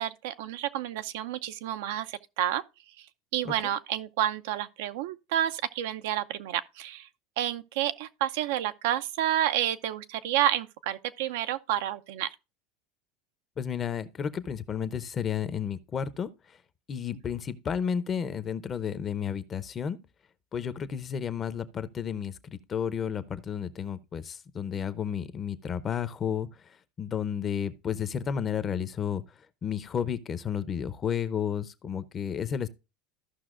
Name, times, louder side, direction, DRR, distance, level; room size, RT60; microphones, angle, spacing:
voice 1, 0.0-2.6 3.0-3.1 3.3-7.1 7.4-12.3, right 12 dB, 80° right, 0.6 m, -30 dB
voice 2, 13.6-16.3 16.9-20.0 20.5-26.5 27.0-29.2 29.6-32.7, left 8 dB, 30° left, 0.7 m, -32 dB
14.5 x 5.7 x 2.5 m
supercardioid pair, 135°, 0 cm